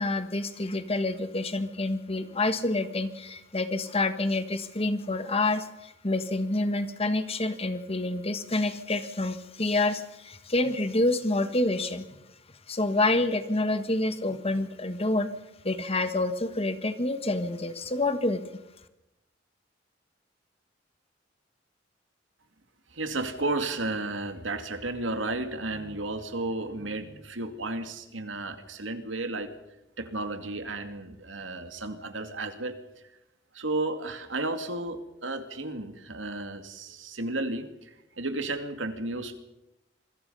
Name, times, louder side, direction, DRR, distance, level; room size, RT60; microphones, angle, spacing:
voice 1, 0.0-12.1 12.7-15.3 15.6-18.4, left 2 dB, 30° left, 10 dB, 1.6 m, -28 dB
voice 2, 22.9-29.5 30.0-32.7 33.5-39.4, right 2 dB, 85° right, 7 dB, 2.4 m, -33 dB
26.0 x 21.5 x 5.6 m, 0.90 s
head